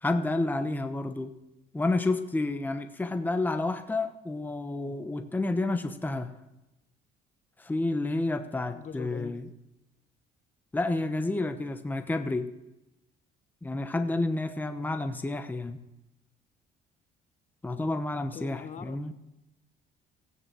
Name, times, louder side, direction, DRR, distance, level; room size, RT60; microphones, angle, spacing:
voice 1, 0.0-1.3 1.7-6.3 7.6-9.4 10.7-12.5 13.6-15.8 17.6-19.1, left 2 dB, 10° left, 8 dB, 1.0 m, -30 dB
voice 2, 8.7-9.4 18.3-19.1, left 7 dB, 45° left, 11 dB, 1.2 m, -42 dB
16.0 x 9.7 x 7.5 m, 0.94 s
cardioid pair, 110°, 17 cm